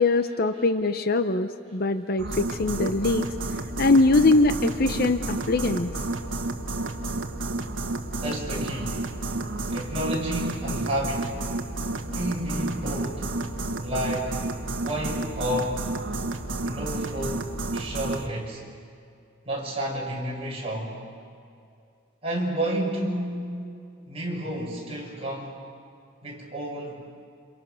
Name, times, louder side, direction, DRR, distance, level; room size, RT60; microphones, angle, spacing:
voice 1, 0.0-3.3 3.8-5.9, left 3 dB, 50° left, 10 dB, 0.8 m, -22 dB
sound 1, 2.2-18.3, right 2 dB, 80° right, 1.5 m, -31 dB
voice 2, 8.1-9.0 9.7-11.4 12.0-13.3 13.8-14.4 14.8-15.9 16.6-18.6 19.4-21.0 22.2-23.5 24.1-25.6 26.2-27.0, right 1 dB, 30° right, -3 dB, 6.3 m, -31 dB
29.5 x 28.5 x 6.5 m, 2.5 s
head